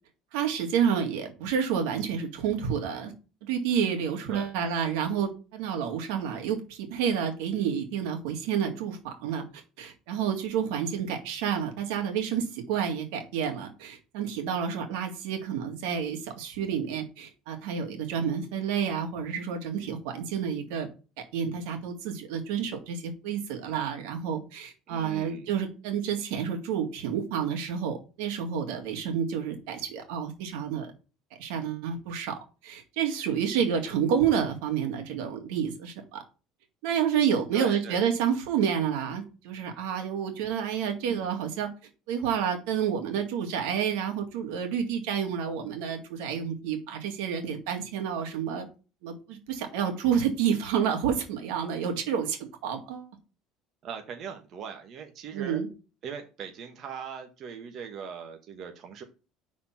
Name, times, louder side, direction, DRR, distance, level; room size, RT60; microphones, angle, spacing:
voice 1, 0.3-3.1 3.4-9.4 9.8-20.9 21.3-30.9 31.4-36.2 36.8-41.7 42.1-48.7 49.0-53.1 55.3-55.7, right 8 dB, 85° right, 3 dB, 2.0 m, -29 dB
voice 2, 24.9-25.5 37.5-38.0 41.1-41.3 53.8-55.6 56.0-59.0, right 7 dB, 45° right, 4 dB, 1.2 m, -40 dB
5.8 x 4.2 x 5.6 m, 0.32 s
cardioid pair, 140°, 0 cm